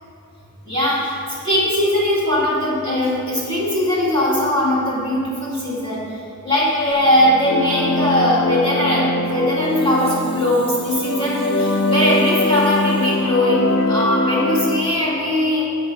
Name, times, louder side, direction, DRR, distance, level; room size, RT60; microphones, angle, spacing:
voice 1, 0.7-1.2 1.4-6.2 6.4-15.6, left 1 dB, 20° left, -8 dB, 2.4 m, -20 dB
sound 1, 7.0-14.9, left 2 dB, 80° left, 0.8 m, -22 dB
12.0 x 8.2 x 3.9 m, 2.8 s
head